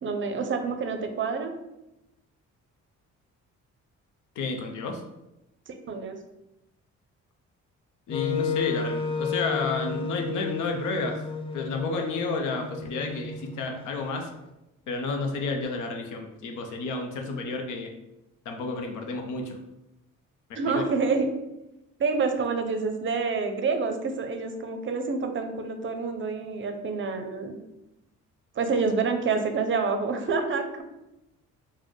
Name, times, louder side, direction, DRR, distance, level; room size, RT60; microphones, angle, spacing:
voice 1, 0.0-1.5 5.7-6.2 20.6-21.3 22.0-27.6 28.6-30.8, right 4 dB, 40° right, 6 dB, 0.5 m, -27 dB
voice 2, 4.4-5.0 8.1-11.2 11.5-14.3 14.9-17.9 18.5-19.6 20.5-20.9, left 3 dB, 80° left, 4 dB, 0.6 m, -31 dB
Wind instrument woodwind instrument, 8.1-14.1, left 5 dB, 20° left, 0.3 m, -32 dB
4.0 x 2.1 x 3.1 m, 0.91 s
cardioid pair, 90°, 30 cm